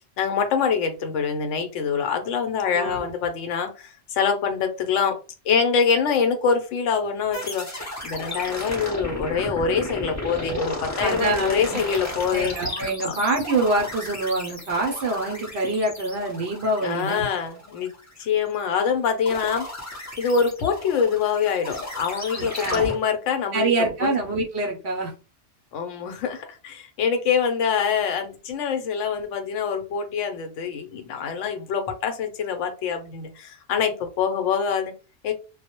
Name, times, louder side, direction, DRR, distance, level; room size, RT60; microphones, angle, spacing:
voice 1, 0.2-5.2 5.5-7.7 8.0-12.5 13.0-13.1 16.8-17.9 18.2-19.7 20.2-24.1 25.7-34.9 35.2-35.3, left 6 dB, 80° left, 7 dB, 0.9 m, -25 dB
voice 2, 2.7-3.1 11.0-11.8 12.3-17.3 22.3-22.9 23.5-25.1, right 2 dB, 65° right, 1 dB, 0.8 m, -25 dB
sound 1, 7.3-18.8 19.2-22.9, left 1 dB, 20° left, 0.4 m, -34 dB
2.2 x 2.0 x 2.8 m, 0.33 s
omnidirectional pair, 1.3 m